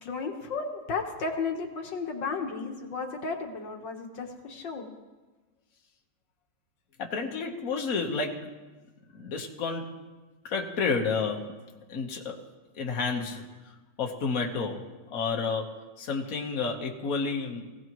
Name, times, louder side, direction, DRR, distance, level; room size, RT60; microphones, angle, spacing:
voice 1, 0.0-4.9, left 4 dB, 75° left, 2 dB, 2.1 m, -34 dB
voice 2, 7.0-8.6 9.1-10.0 10.4-11.5 11.9-12.4 12.7-14.8 15.1-17.7, left 4 dB, 50° left, 1 dB, 1.7 m, -31 dB
22.5 x 16.0 x 3.1 m, 1.2 s
omnidirectional pair, 2.0 m